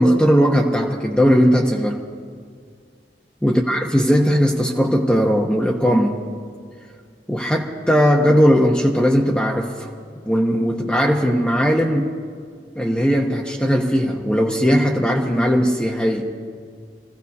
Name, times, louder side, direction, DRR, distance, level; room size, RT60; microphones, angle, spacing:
voice 1, 0.0-2.0 3.4-6.2 7.3-9.9 10.3-12.1 12.8-16.3, equal, 5° left, -1 dB, 0.7 m, -18 dB
25.5 x 15.5 x 2.8 m, 2.1 s
head